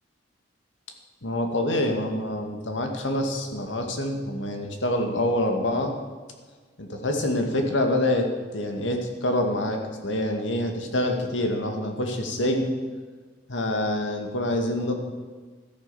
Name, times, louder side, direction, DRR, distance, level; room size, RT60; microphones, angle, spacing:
voice 1, 1.2-5.9 6.8-12.7 13.5-15.0, left 1 dB, 80° left, 3 dB, 2.1 m, -26 dB
13.5 x 10.5 x 7.0 m, 1.4 s
head